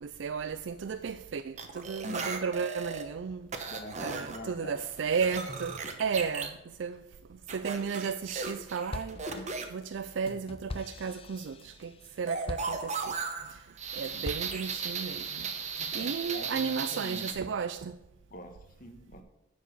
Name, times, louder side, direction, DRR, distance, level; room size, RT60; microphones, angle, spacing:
voice 1, 0.0-3.7 4.0-7.0 7.5-13.2 13.5-13.6 13.9-15.5 15.9-18.0, right 6 dB, 75° right, 0.4 m, -34 dB
sound 1, 1.6-3.0 3.5-4.4 4.8-6.5 7.5-9.6 12.3-17.3, right 5 dB, 40° right, 1.0 m, -36 dB
voice 2, 3.7-4.8 14.1-14.2 15.8-17.3 18.3-19.2, left 1 dB, 50° left, 1.3 m, -45 dB
sound 2, 8.0-8.6 8.9-13.4 13.8-14.8, left 3 dB, 30° left, 0.4 m, -43 dB
11.0 x 4.8 x 6.8 m
head